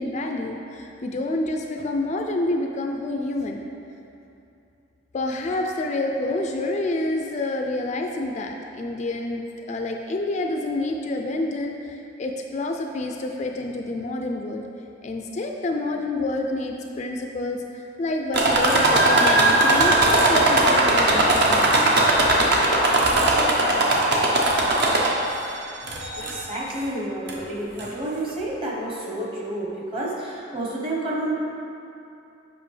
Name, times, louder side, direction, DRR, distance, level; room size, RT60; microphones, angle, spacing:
voice 1, 0.0-3.6 5.1-14.6 15.0-21.6 21.9-22.0, left 2 dB, 35° left, 2 dB, 0.3 m, -28 dB
sound 1, 18.3-25.4 25.9-26.5 27.3-27.4 27.8-27.9, right 2 dB, 60° right, 0.8 m, -19 dB
voice 2, 26.2-31.3, right 1 dB, 25° right, -3 dB, 1.0 m, -30 dB
8.1 x 5.2 x 3.2 m, 2.7 s
head